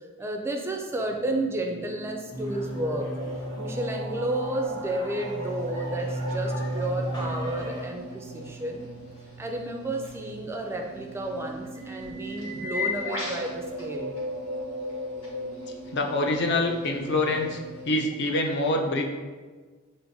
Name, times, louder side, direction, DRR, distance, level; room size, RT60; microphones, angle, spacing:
voice 1, 0.2-3.2 3.6-8.9 9.4-14.2, right 1 dB, 10° right, 2 dB, 0.3 m, -32 dB
sound 1, 0.9-18.2, equal, 85° right, 0.4 m, -38 dB
sound 2, 2.3-7.9, equal, 20° left, 0.7 m, -34 dB
sound 3, 5.4-18.0, left 4 dB, 80° left, 1.4 m, -41 dB
voice 2, 15.9-17.6 17.9-19.2, left 2 dB, 55° left, 2 dB, 0.5 m, -25 dB
6.3 x 2.5 x 2.6 m, 1.4 s
head